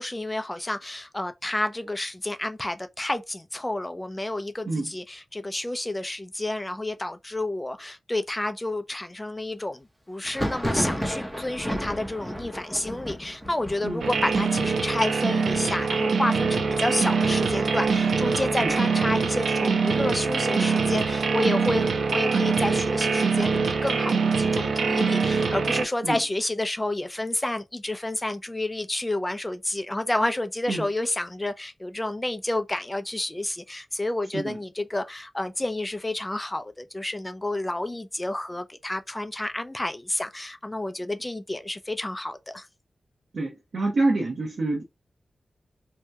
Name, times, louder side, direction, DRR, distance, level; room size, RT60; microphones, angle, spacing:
voice 1, 0.0-21.9 22.1-42.7, left 1 dB, 15° left, 0.4 m, -30 dB
Thunder, 10.2-19.7 20.0-20.7 20.9-21.9 22.3-24.0, equal, 5° right, 0.8 m, -35 dB
sound 1, 14.0-25.8, right 5 dB, 85° right, 0.5 m, -24 dB
voice 2, 43.3-44.8, right 2 dB, 60° right, 0.8 m, -27 dB
2.8 x 2.2 x 3.4 m
wide cardioid pair, 135°, 0 cm